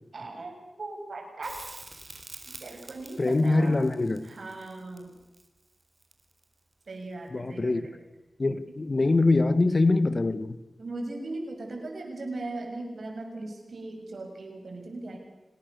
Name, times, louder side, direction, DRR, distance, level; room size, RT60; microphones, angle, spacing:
voice 1, 0.1-1.6 2.6-3.9 4.2-5.1 6.9-7.9 8.7-8.8 10.8-15.2, right 2 dB, 70° right, 6.8 m, -38 dB
Crackle, 1.4-6.5 9.3-9.4, right 2 dB, 40° right, 4.0 m, -47 dB
voice 2, 3.2-4.3 7.3-7.8 8.4-10.6, left 2 dB, 50° left, 1.6 m, -23 dB
26.0 x 19.0 x 6.8 m
cardioid pair, 45°, 0 cm